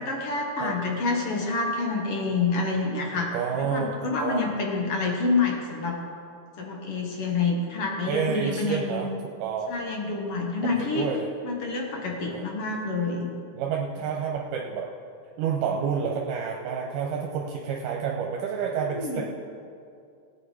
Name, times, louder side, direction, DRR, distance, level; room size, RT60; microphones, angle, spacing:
voice 1, 0.0-6.0 6.6-9.1 9.7-11.1 11.4-13.3 18.9-19.2, left 3 dB, 55° left, 0 dB, 1.9 m, -28 dB
voice 2, 3.3-4.5 8.1-9.1 9.4-9.7 10.6-11.3 12.3-12.5 13.6-14.9 15.4-19.2, right 6 dB, 80° right, 0 dB, 2.4 m, -29 dB
18.0 x 8.3 x 4.9 m, 2.5 s
omnidirectional pair, 3.7 m